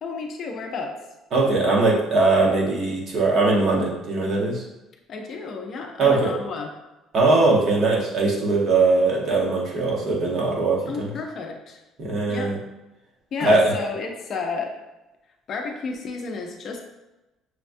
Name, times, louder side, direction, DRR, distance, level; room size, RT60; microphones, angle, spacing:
voice 1, 0.0-0.9 5.1-6.7 10.9-11.8 12.3-12.5 13.3-14.7 15.5-16.8, left 4 dB, 40° left, 2 dB, 0.5 m, -31 dB
voice 2, 1.3-4.6 6.0-6.3 7.1-11.1 12.0-12.6 13.4-13.7, right 3 dB, 40° right, -3 dB, 1.0 m, -20 dB
6.3 x 2.2 x 2.6 m, 1.0 s
cardioid pair, 150°, 0 cm